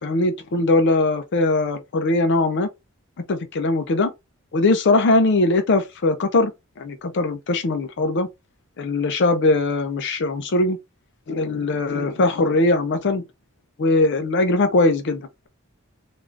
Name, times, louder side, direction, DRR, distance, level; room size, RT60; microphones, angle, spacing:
voice 1, 0.0-2.7 3.3-4.1 4.5-6.5 6.8-8.3 8.8-10.8 11.3-13.2 13.8-15.5, left 2 dB, 55° left, 0.5 m, -20 dB
3.5 x 2.4 x 2.5 m
head